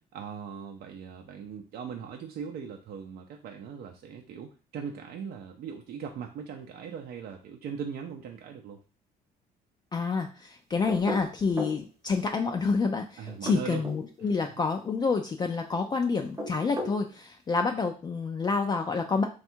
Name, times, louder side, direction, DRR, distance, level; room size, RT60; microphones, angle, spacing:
voice 1, 0.1-8.8 13.2-13.9 14.2-14.3, right 6 dB, 65° right, 3 dB, 0.5 m, -39 dB
voice 2, 9.9-19.2, left 4 dB, 25° left, 4 dB, 0.4 m, -28 dB
sound 1, 10.9-11.8 13.3-14.0 16.2-17.0, equal, 20° right, 0.8 m, -35 dB
3.4 x 2.4 x 4.4 m, 0.35 s
cardioid pair, 110°, 17 cm